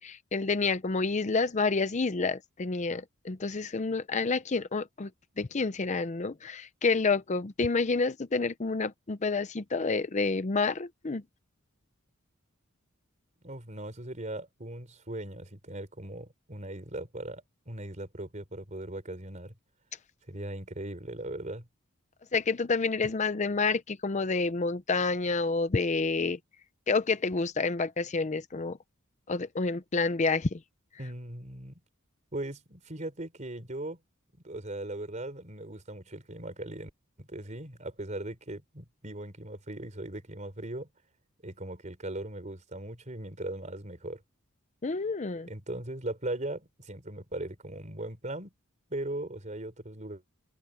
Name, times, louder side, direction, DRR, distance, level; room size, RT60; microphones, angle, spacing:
voice 1, 0.0-5.1 5.4-11.2 22.3-26.4 26.9-28.8 29.3-30.6 44.8-45.5, left 4 dB, 35° left, 0.6 m, -29 dB
voice 2, 13.4-19.5 20.3-21.7 31.0-31.8 32.3-34.0 34.4-36.9 37.2-40.9 41.4-44.2 45.5-48.5 48.9-50.2, right 1 dB, 35° right, 4.2 m, -39 dB
head